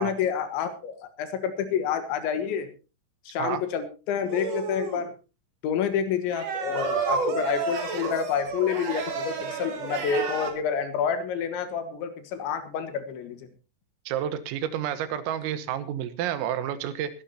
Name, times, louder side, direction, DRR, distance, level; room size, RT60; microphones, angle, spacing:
voice 1, 0.0-2.7 3.3-5.1 5.6-13.5, left 7 dB, 70° left, 10 dB, 3.6 m, -28 dB
sound 1, 4.2-5.1 6.3-10.5, right 4 dB, 45° right, 2.3 m, -30 dB
voice 2, 14.1-17.1, right 10 dB, 90° right, 13 dB, 3.9 m, -30 dB
21.5 x 12.0 x 2.8 m, 0.32 s
omnidirectional pair, 5.8 m